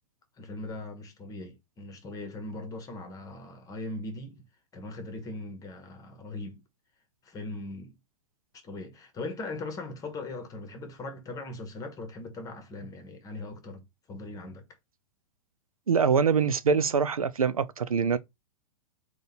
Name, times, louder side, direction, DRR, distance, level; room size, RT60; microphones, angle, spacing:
voice 1, 0.4-4.4 4.7-6.6 7.2-8.0 8.6-14.6, left 2 dB, 20° left, 1.0 m, -40 dB
voice 2, 15.9-18.2, right 6 dB, 85° right, 0.4 m, -24 dB
3.8 x 2.4 x 4.0 m
figure-of-eight pair, 100°, 18 cm